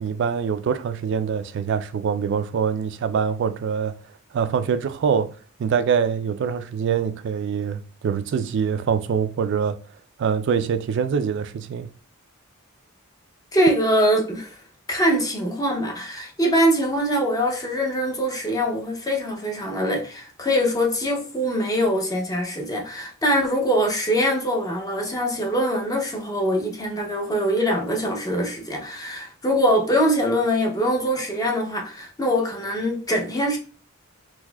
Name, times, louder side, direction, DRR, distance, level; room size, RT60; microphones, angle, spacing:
voice 1, 0.0-3.9 4.3-5.3 5.6-9.8 10.2-11.9, right 7 dB, 55° right, 0.3 m, -24 dB
voice 2, 13.5-14.6 14.9-33.6, equal, 15° left, 0.6 m, -23 dB
4.1 x 2.6 x 2.2 m
head